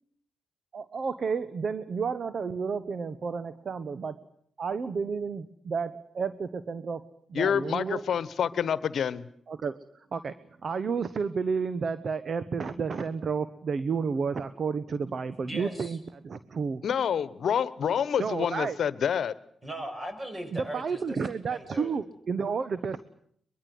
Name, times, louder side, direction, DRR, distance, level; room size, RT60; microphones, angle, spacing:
voice 1, 0.7-4.2 4.6-7.0 7.3-8.0 9.5-9.8 10.1-10.3 10.6-16.0 16.2-16.8 18.2-18.8 20.5-23.0, right 5 dB, 55° right, 14 dB, 1.1 m, -31 dB
voice 2, 7.3-9.3 16.8-19.3, left 8 dB, 65° left, 17 dB, 1.1 m, -27 dB
voice 3, 15.4-16.0 19.6-21.2 21.5-22.0, right 1 dB, 30° right, 5 dB, 7.4 m, -38 dB
23.0 x 22.5 x 7.9 m, 0.67 s
supercardioid pair, 45°, 0 cm